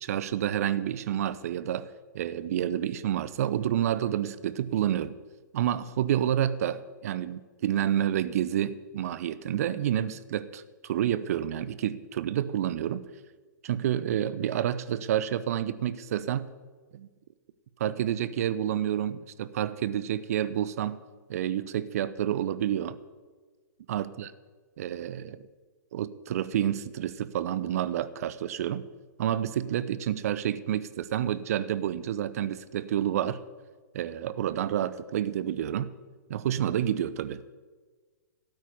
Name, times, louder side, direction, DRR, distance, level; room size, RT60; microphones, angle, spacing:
voice 1, 0.0-5.2 5.5-13.1 13.6-16.5 16.9-17.1 17.8-21.0 21.3-23.0 23.9-24.3 24.8-25.4 25.9-28.9 29.2-33.4 33.9-35.9 36.3-37.4, right 10 dB, 50° right, 16 dB, 0.7 m, -29 dB
12.5 x 9.2 x 9.4 m, 1.4 s
figure-of-eight pair, 120°, 11 cm